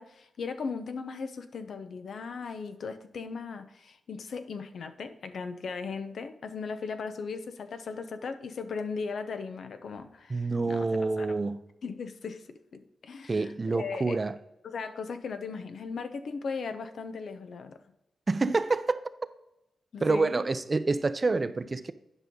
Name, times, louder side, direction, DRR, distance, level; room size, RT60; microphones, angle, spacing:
voice 1, 0.0-11.4 11.8-13.4 13.7-14.2 14.6-17.8 19.9-20.3, left 5 dB, 75° left, 0.7 m, -37 dB
voice 2, 10.3-11.6 13.3-14.3 18.3-19.1 20.0-21.9, right 3 dB, 40° right, 0.5 m, -27 dB
10.5 x 5.4 x 3.8 m
cardioid pair, 55°, 0 cm